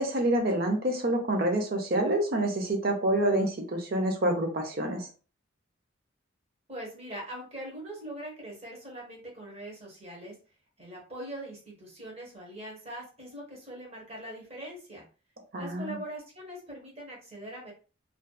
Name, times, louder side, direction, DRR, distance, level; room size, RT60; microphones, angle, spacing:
voice 1, 0.0-5.1 15.5-16.0, right 1 dB, 50° right, 3 dB, 0.6 m, -27 dB
voice 2, 6.7-10.3 10.8-15.0 15.6-17.7, right 1 dB, 30° right, -2 dB, 1.0 m, -42 dB
2.6 x 2.3 x 2.2 m, 0.36 s
head